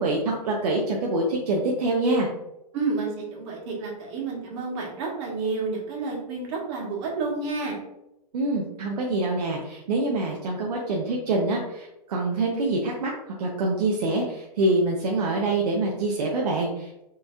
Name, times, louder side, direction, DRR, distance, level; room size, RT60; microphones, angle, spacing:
voice 1, 0.0-2.3 8.3-13.1 13.4-17.0, right 2 dB, 70° right, -1 dB, 0.8 m, -25 dB
voice 2, 2.7-7.8, right 4 dB, 45° right, -2 dB, 1.5 m, -30 dB
4.4 x 3.2 x 2.4 m, 0.86 s
hypercardioid pair, 130°, 21 cm